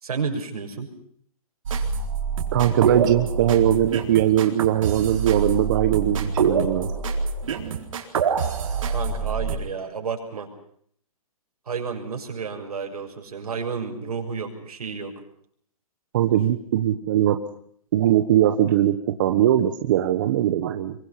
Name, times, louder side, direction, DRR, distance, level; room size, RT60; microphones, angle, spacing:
voice 1, 0.0-0.9 8.9-10.5 11.6-15.1, right 5 dB, 85° right, 3 dB, 6.8 m, -31 dB
sound 1, 1.7-9.6, right 5 dB, 60° right, 4.2 m, -26 dB
voice 2, 2.5-6.9 16.1-17.4 17.9-20.9, right 12 dB, 35° right, 7 dB, 1.3 m, -20 dB
25.0 x 23.5 x 5.9 m, 0.62 s
hypercardioid pair, 170°, 19 cm